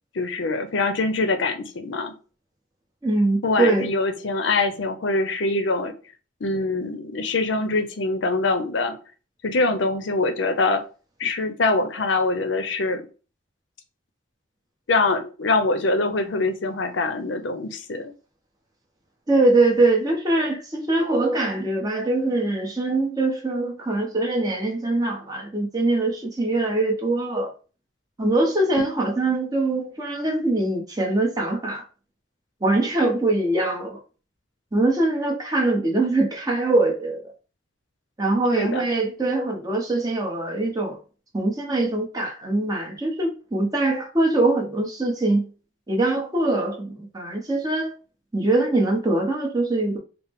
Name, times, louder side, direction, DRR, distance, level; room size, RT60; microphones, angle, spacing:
voice 1, 0.1-2.1 3.4-5.9 6.4-9.0 9.4-10.8 11.2-13.0 14.9-18.1 38.5-38.8, left 3 dB, 75° left, 0.6 m, -24 dB
voice 2, 3.0-3.9 19.3-27.5 28.2-31.8 32.6-34.0 34.7-37.2 38.2-41.0 41.3-45.5 45.9-47.9 48.3-50.0, right 2 dB, 20° right, 0.9 m, -23 dB
4.5 x 2.0 x 3.6 m
head